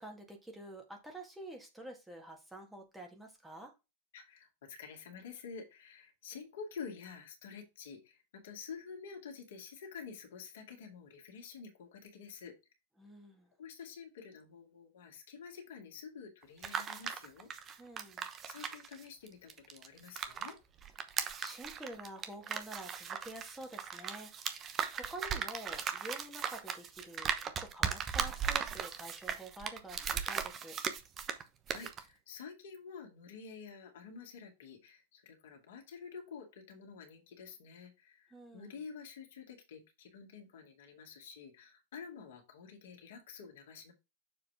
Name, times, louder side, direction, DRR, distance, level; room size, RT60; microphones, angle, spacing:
voice 1, 0.0-3.7 13.0-13.5 17.8-18.3 21.4-30.8 38.3-38.8, right 1 dB, 5° right, 2 dB, 1.8 m, -48 dB
voice 2, 4.1-12.5 13.6-17.5 18.4-20.6 31.7-43.9, left 6 dB, 60° left, 2 dB, 2.2 m, -49 dB
sound 1, 16.4-20.5 20.8-31.4 31.7-32.0, right 7 dB, 25° right, 1.0 m, -37 dB
7.0 x 4.8 x 3.6 m, 0.25 s
figure-of-eight pair, 90°, 0 cm